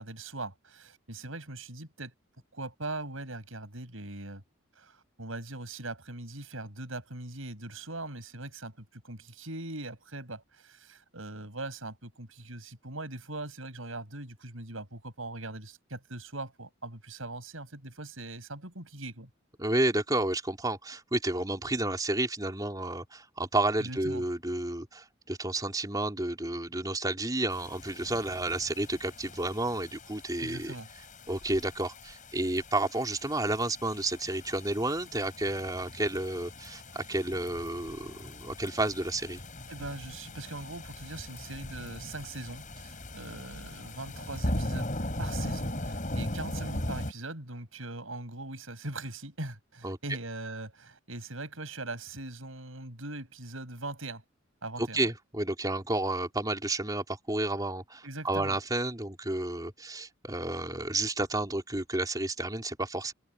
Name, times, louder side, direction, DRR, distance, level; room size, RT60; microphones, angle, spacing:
voice 1, 0.0-2.1 2.5-4.4 4.8-19.3 23.8-24.2 30.4-30.9 39.7-44.9 45.2-54.2 54.6-55.1 58.0-58.6, right 2 dB, 80° right, 7.2 m, -41 dB
voice 2, 19.6-30.7 31.3-39.4 49.8-50.0 54.8-63.1, right 2 dB, 20° right, 3.3 m, -31 dB
sound 1, 27.5-47.1, left 1 dB, 40° left, 6.1 m, -39 dB
head